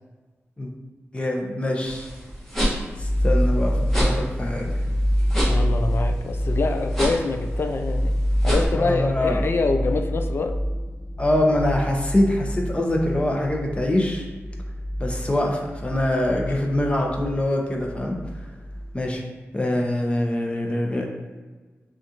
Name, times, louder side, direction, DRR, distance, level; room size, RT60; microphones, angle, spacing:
voice 1, 1.1-2.1 3.0-4.7 8.7-9.4 11.2-14.3 15.0-18.2 18.9-19.2 19.5-21.1, left 1 dB, 25° left, 0 dB, 0.8 m, -24 dB
sound 1, 1.8-8.7, equal, 5° left, 1.4 m, -29 dB
sound 2, 3.0-19.1, equal, 70° left, 1.0 m, -26 dB
voice 2, 5.5-8.2 8.4-10.6, left 3 dB, 50° left, 6 dB, 0.4 m, -25 dB
6.3 x 2.5 x 2.9 m, 1.3 s
cardioid pair, 65°, 5 cm